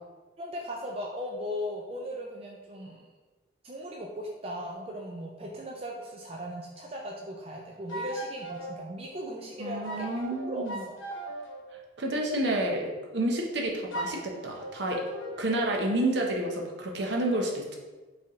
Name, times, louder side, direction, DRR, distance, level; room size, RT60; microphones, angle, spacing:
voice 1, 0.4-3.1 3.6-10.1 10.5-10.9, equal, 30° right, -1 dB, 0.4 m, -37 dB
sound 1, 7.9-8.7 9.8-11.6 13.9-15.8, right 1 dB, 85° left, 0.8 m, -38 dB
voice 2, 9.6-10.8 12.0-15.0 15.4-17.8, right 1 dB, 65° right, 0 dB, 0.7 m, -29 dB
4.5 x 3.4 x 3.0 m, 1.3 s
head